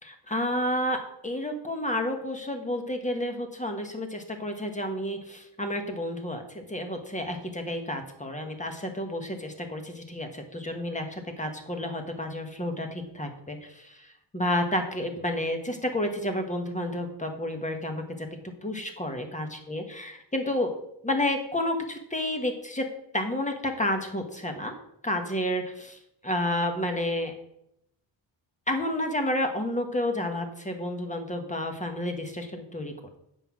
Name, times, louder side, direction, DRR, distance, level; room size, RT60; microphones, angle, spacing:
voice 1, 0.0-18.3 18.6-20.7 21.0-22.8 23.1-24.7 25.0-26.0 26.2-27.3 28.7-33.2, left 1 dB, 15° left, 5 dB, 1.5 m, -30 dB
8.2 x 5.6 x 6.1 m, 0.77 s
wide cardioid pair, 100°, 46 cm